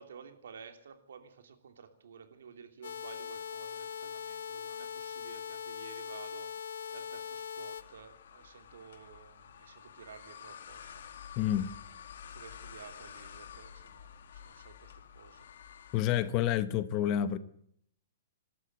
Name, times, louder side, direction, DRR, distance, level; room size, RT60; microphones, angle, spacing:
voice 1, 0.0-6.5 6.9-11.0 12.3-15.5, right 6 dB, 80° right, 3.1 m, -53 dB
sound 1, 2.8-7.8, left 7 dB, 80° left, 1.6 m, -41 dB
sound 2, 7.8-16.1, left 8 dB, 65° left, 1.9 m, -50 dB
voice 2, 11.4-11.7 15.9-17.4, left 11 dB, 25° left, 0.8 m, -29 dB
26.0 x 12.5 x 8.0 m
hypercardioid pair, 175°, 0 cm